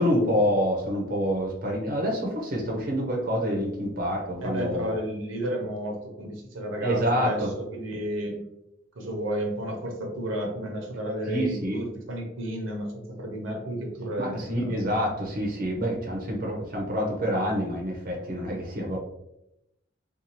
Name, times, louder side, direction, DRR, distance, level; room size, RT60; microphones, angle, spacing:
voice 1, 0.0-5.0 6.8-7.5 11.3-11.8 14.2-19.0, equal, 45° right, -1 dB, 0.6 m, -27 dB
voice 2, 4.4-8.5 8.9-14.8 18.8-19.0, equal, 85° right, 1 dB, 0.7 m, -32 dB
2.6 x 2.3 x 2.9 m, 0.83 s
head